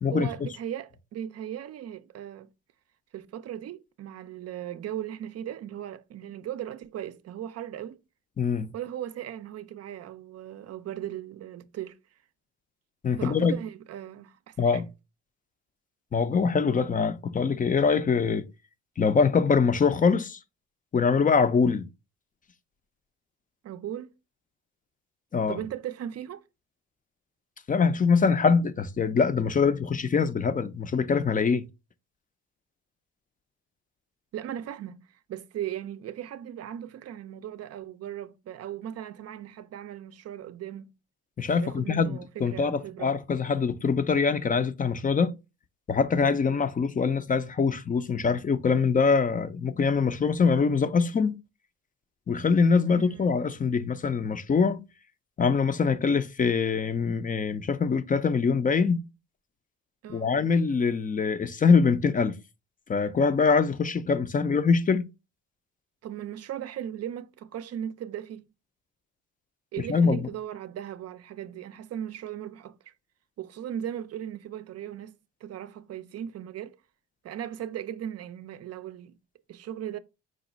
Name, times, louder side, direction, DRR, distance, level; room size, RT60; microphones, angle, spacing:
voice 1, 0.1-2.5 3.1-8.0 8.7-12.0 13.2-14.8 23.6-24.1 25.5-26.4 34.3-40.9 41.6-43.2 52.9-53.4 60.0-60.3 66.0-68.5 69.7-72.9 73.4-76.8 77.2-79.2 79.5-80.0, right 10 dB, 55° right, 0.5 m, -37 dB
voice 2, 8.4-8.7 13.0-13.6 14.6-14.9 16.1-18.5 19.0-20.4 20.9-21.9 25.3-25.6 27.7-31.7 41.4-45.3 45.9-51.4 52.3-54.8 55.4-59.0 60.1-62.4 62.9-65.1 69.9-70.3, left 5 dB, 25° left, 0.4 m, -24 dB
5.0 x 2.3 x 3.9 m
cardioid pair, 90°, 30 cm